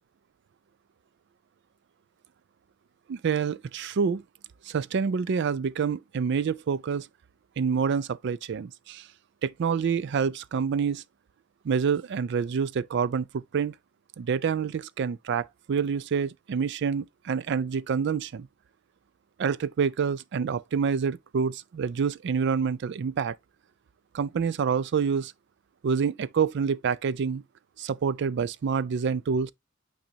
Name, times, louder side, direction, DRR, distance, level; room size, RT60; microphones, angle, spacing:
voice 1, 3.1-4.2 4.6-7.1 7.6-9.1 9.4-11.0 11.6-13.7 14.2-18.5 19.4-23.4 24.1-25.3 25.8-27.4 27.8-29.5, right 6 dB, 60° right, 0.4 m, -27 dB
8.8 x 4.0 x 2.8 m
head